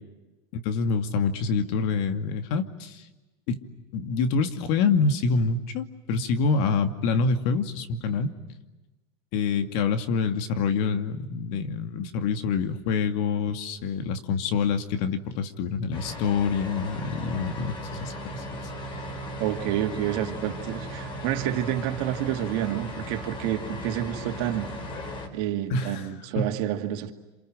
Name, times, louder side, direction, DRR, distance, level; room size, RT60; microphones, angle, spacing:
voice 1, 0.5-3.0 3.5-3.6 3.9-8.3 9.3-18.6 25.7-26.1 26.4-26.5, left 5 dB, 65° left, 2.4 m, -26 dB
sound 1, 15.9-25.3, left 1 dB, 35° left, 5.2 m, -37 dB
voice 2, 19.4-24.7 25.3-27.1, right 12 dB, 65° right, 2.5 m, -29 dB
28.0 x 27.5 x 7.7 m
supercardioid pair, 120°, 13 cm